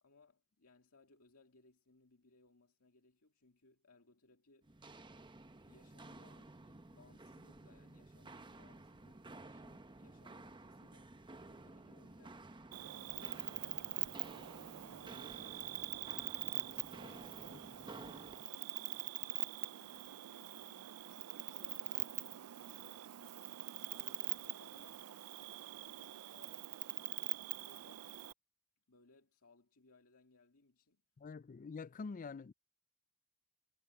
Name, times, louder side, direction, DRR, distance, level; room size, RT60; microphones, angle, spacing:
voice 1, 0.0-4.8 5.6-11.2 11.5-12.4 12.8-16.4 17.0-21.1 21.4-23.2 23.9-25.1 25.7-28.2 28.9-31.0, left 3 dB, 75° left, 2.3 m, -67 dB
Walk footsteps, 4.6-18.4, right 2 dB, 20° right, 0.8 m, -54 dB
Cricket, 12.7-28.3, right 17 dB, 85° right, 0.4 m, -44 dB
voice 2, 31.2-32.5, left 4 dB, 35° left, 0.4 m, -46 dB
head